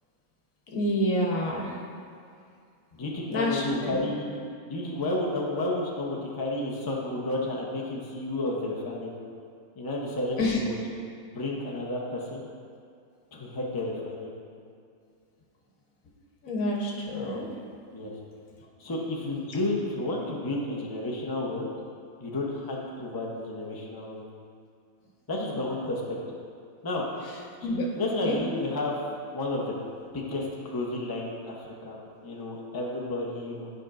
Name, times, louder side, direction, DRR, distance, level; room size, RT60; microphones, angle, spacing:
voice 1, 0.7-1.7 3.3-4.1 10.4-10.6 16.4-17.5 19.5-19.6 27.3-27.9 28.2-28.4, left 1 dB, 75° left, -2 dB, 1.4 m, -28 dB
voice 2, 2.9-4.3 4.6-9.2 9.8-10.8 11.2-12.5 13.3-14.3 17.9-18.1 18.8-21.9 22.2-24.2 25.3-26.2 26.8-27.0 28.0-28.9 29.3-29.8 30.1-33.7, left 2 dB, 25° left, -3 dB, 0.6 m, -31 dB
10.5 x 5.1 x 2.5 m, 2.4 s
omnidirectional pair, 1.5 m